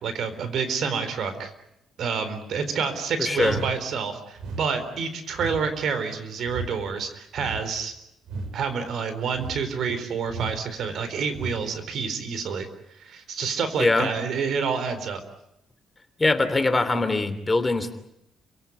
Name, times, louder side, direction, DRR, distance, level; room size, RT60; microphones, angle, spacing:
voice 1, 0.0-1.5 2.0-7.9 8.5-12.7 13.0-15.2, right 5 dB, 70° right, 10 dB, 4.2 m, -28 dB
voice 2, 3.2-3.6 13.8-14.1 16.2-17.9, left 3 dB, 20° left, 10 dB, 3.1 m, -22 dB
sound 1, 3.4-3.8 4.4-4.7 5.3-5.7 6.4-6.7 7.4-7.7 8.3-8.5 9.3-9.7 10.3-10.6 11.3-11.6, right 3 dB, 85° right, 6.2 m, -34 dB
30.0 x 17.5 x 9.5 m, 0.78 s
cardioid pair, 90°, 0 cm